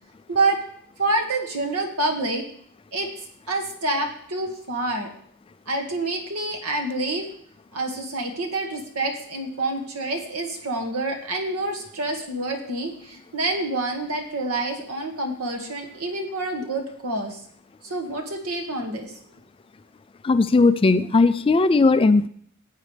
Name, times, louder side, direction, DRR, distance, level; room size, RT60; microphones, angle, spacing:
voice 1, 0.3-0.6 1.0-2.4 2.9-5.1 5.7-7.3 7.7-17.4 17.8-19.2, right 2 dB, 80° right, 3 dB, 1.9 m, -27 dB
voice 2, 20.2-22.3, left 3 dB, 25° left, 11 dB, 0.3 m, -17 dB
15.0 x 8.2 x 3.3 m, 0.63 s
head